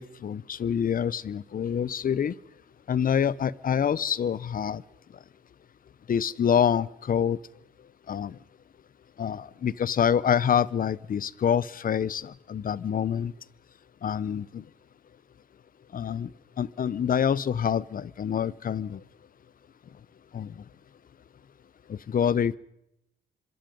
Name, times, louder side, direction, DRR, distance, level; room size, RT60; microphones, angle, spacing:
voice 1, 0.0-2.3 2.9-4.8 6.1-7.4 8.1-8.4 9.2-13.3 14.0-14.6 15.9-16.3 16.6-19.0 20.3-20.5 21.9-22.6, left 8 dB, 50° left, 22 dB, 0.8 m, -26 dB
26.0 x 22.5 x 5.3 m, 0.81 s
cardioid pair, 95°, 19 cm